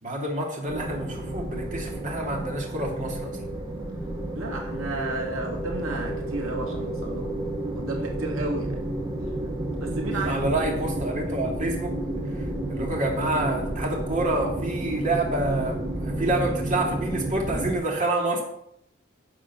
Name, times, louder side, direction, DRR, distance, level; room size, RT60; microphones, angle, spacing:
voice 1, 0.0-3.4 10.1-11.9 12.7-18.4, right 2 dB, 40° right, -1 dB, 2.6 m, -28 dB
sound 1, 0.7-17.8, right 1 dB, 20° right, 2.5 m, -31 dB
voice 2, 4.3-7.3 7.7-8.8 9.8-10.4, right 2 dB, 85° right, 1 dB, 2.4 m, -32 dB
11.0 x 7.2 x 6.1 m, 0.76 s
head